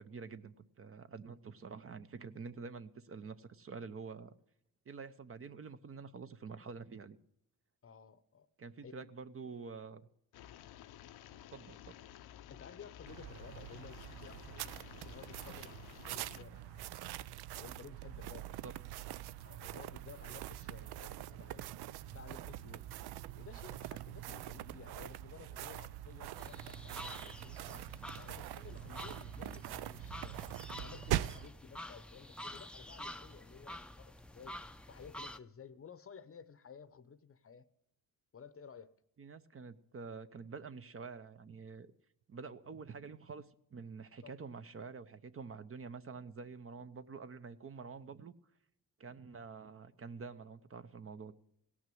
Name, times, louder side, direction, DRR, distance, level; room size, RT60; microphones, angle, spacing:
voice 1, 0.0-4.3 4.9-7.2 8.6-10.0 11.5-12.1 18.6-18.7 19.1-19.2 39.2-41.9 42.3-43.5 43.7-48.3 49.0-51.3, right 5 dB, 35° right, 0.7 m, -47 dB
voice 2, 7.8-8.5 8.8-9.1 12.5-16.9 17.5-18.8 19.4-21.7 22.1-22.9 23.3-30.4 30.7-37.7 38.3-38.9 44.2-44.4, left 6 dB, 35° left, 0.8 m, -55 dB
sound 1, 10.3-16.4, left 11 dB, 75° left, 0.7 m, -54 dB
sound 2, 13.1-31.5, right 13 dB, 80° right, 0.5 m, -43 dB
sound 3, 26.4-35.4, left 1 dB, 5° left, 0.5 m, -49 dB
17.0 x 6.1 x 7.7 m
cardioid pair, 90°, 38 cm